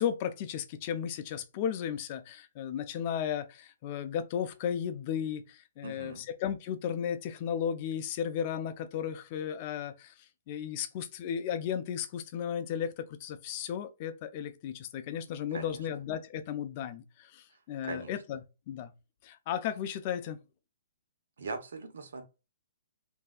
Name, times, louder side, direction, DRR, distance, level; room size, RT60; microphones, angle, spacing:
voice 1, 0.0-10.1 10.5-18.4 18.7-18.9 19.2-20.4, left 9 dB, 35° left, 0.4 m, -34 dB
voice 2, 5.8-6.3 15.5-15.9 17.8-18.1 21.4-22.2, right 4 dB, 80° right, 0.9 m, -40 dB
3.1 x 2.6 x 2.3 m
hypercardioid pair, 160°, 0 cm